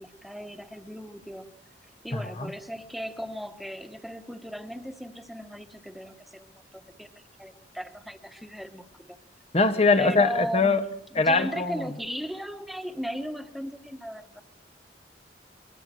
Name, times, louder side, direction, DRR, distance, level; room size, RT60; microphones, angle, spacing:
voice 1, 0.0-1.5 2.0-9.2 10.0-14.4, equal, ahead, 8 dB, 1.3 m, -37 dB
voice 2, 9.5-10.8 11.2-11.8, left 3 dB, 35° left, 10 dB, 0.9 m, -22 dB
23.0 x 22.5 x 7.8 m, 0.69 s
head